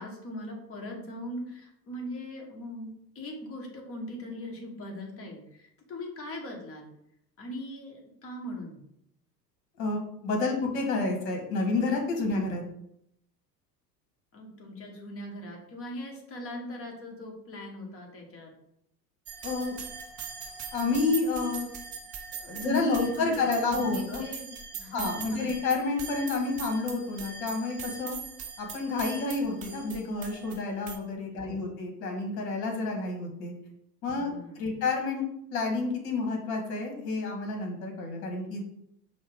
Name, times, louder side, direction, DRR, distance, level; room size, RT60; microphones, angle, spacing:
voice 1, 0.0-6.9 7.4-8.8 14.3-18.5 22.6-23.4 23.8-25.5 31.4-31.6 34.2-34.8, left 1 dB, 25° left, 0 dB, 1.2 m, -40 dB
voice 2, 9.8-12.6 19.4-19.7 20.7-21.7 22.4-24.2 24.9-28.2 28.6-33.5 34.0-35.2 35.5-38.6, left 3 dB, 55° left, 2 dB, 1.4 m, -29 dB
sound 1, 19.3-31.0, right 6 dB, 20° right, 0.3 m, -41 dB
5.3 x 2.3 x 3.5 m, 0.75 s
figure-of-eight pair, 80°, 50 cm